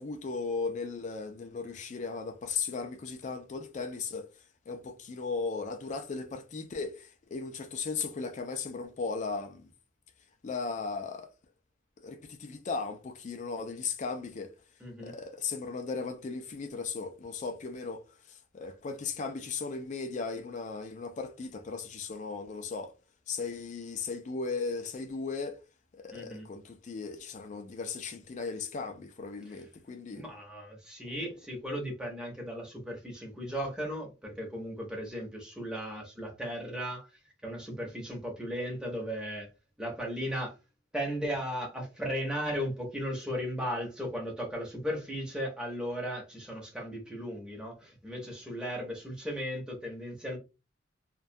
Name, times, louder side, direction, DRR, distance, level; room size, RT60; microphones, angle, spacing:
voice 1, 0.0-4.3 4.7-9.7 10.4-11.3 12.0-14.5 15.0-22.9 23.3-25.6 25.9-30.2, left 4 dB, 40° left, 0.3 m, -37 dB
voice 2, 14.8-15.1 26.1-26.5 30.1-37.1 37.4-39.5 39.8-40.5 40.9-50.4, equal, 5° right, 0.7 m, -36 dB
2.2 x 2.1 x 2.6 m
head